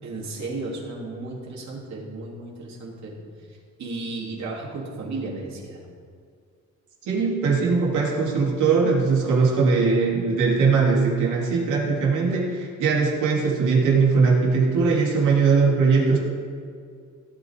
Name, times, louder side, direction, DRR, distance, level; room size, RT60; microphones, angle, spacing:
voice 1, 0.0-3.3 3.8-5.8, right 2 dB, 65° right, -3 dB, 3.2 m, -34 dB
voice 2, 7.0-16.2, right 4 dB, 85° right, -3 dB, 3.2 m, -20 dB
17.0 x 9.4 x 3.8 m, 2.2 s
cardioid pair, 90°, 30 cm